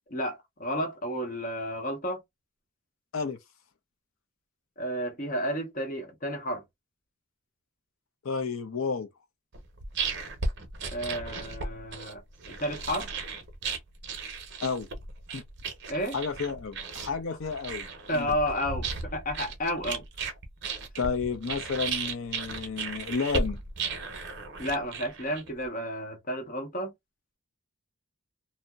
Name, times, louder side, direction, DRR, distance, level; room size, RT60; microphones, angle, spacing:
voice 1, 0.1-2.2 4.8-6.6 10.9-12.2 12.5-13.1 15.9-16.2 18.1-20.0 24.6-26.9, equal, 40° left, 0.8 m, -31 dB
voice 2, 8.2-9.1 14.6-14.9 15.3-15.4 16.1-17.9 18.1-18.3 21.0-23.6, left 5 dB, 70° left, 0.6 m, -31 dB
sound 1, 9.5-25.6, right 4 dB, 55° right, 0.7 m, -35 dB
2.7 x 2.0 x 2.2 m
head